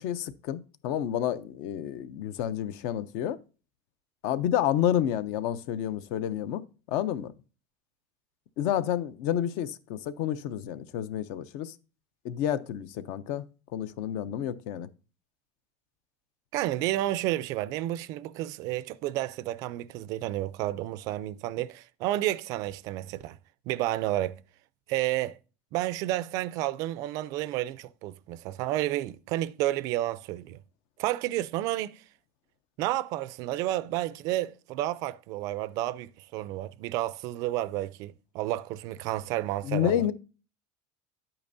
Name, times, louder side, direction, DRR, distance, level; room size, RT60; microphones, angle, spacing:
voice 1, 0.0-3.4 4.2-7.3 8.6-11.7 12.2-13.4 13.7-14.9 39.6-40.1, left 10 dB, 60° left, 0.6 m, -30 dB
voice 2, 16.5-23.4 23.7-24.4 24.9-25.4 25.7-30.6 31.0-32.0 32.8-40.1, right 15 dB, 50° right, 0.4 m, -31 dB
11.0 x 8.7 x 2.6 m
cardioid pair, 165°, 7 cm